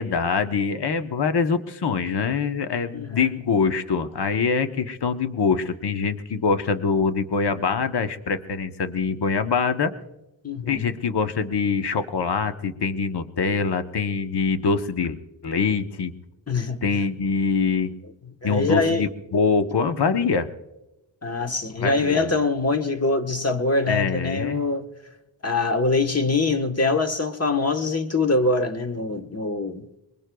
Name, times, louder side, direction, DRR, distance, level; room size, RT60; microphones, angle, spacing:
voice 1, 0.0-9.9 10.7-15.2 15.4-16.1 16.8-17.9 18.4-20.5 21.8-22.3 23.9-24.7, left 5 dB, 55° left, 1.1 m, -24 dB
voice 2, 2.9-3.3 10.4-10.9 16.5-16.8 18.4-19.1 21.2-24.9 25.4-29.8, left 3 dB, 30° left, 1.2 m, -24 dB
23.5 x 21.5 x 2.3 m
cardioid pair, 65°, 46 cm